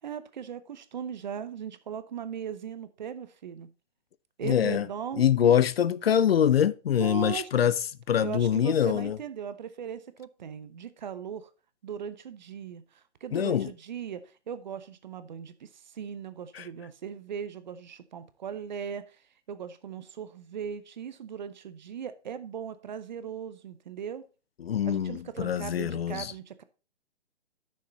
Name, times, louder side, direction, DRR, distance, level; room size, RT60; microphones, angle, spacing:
voice 1, 0.0-3.7 4.4-5.6 6.9-7.7 8.2-11.5 11.8-19.2 19.5-24.2 24.9-26.6, right 8 dB, 40° right, 0.7 m, -38 dB
voice 2, 4.4-4.9 5.2-7.7 8.1-9.2 13.3-13.7 16.5-16.6 24.6-26.3, left 9 dB, 55° left, 0.5 m, -24 dB
9.8 x 6.5 x 4.0 m
hypercardioid pair, 150°, 35 cm